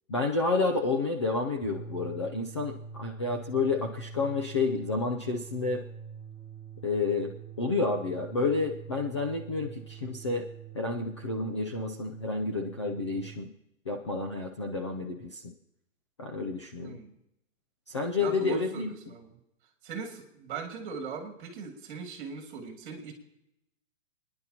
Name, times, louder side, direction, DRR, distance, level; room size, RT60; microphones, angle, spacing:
voice 1, 0.1-5.8 6.8-10.5 10.7-13.5 13.9-15.4 16.2-17.0 17.9-18.9, left 3 dB, 25° left, 3 dB, 0.4 m, -30 dB
sound 1, 1.5-13.4, right 6 dB, ahead, 5.4 m, -45 dB
voice 2, 16.8-17.1 18.2-19.3 19.8-23.1, right 5 dB, 40° right, 3 dB, 2.6 m, -40 dB
29.0 x 10.5 x 2.9 m, 0.83 s
hypercardioid pair, 175°, 39 cm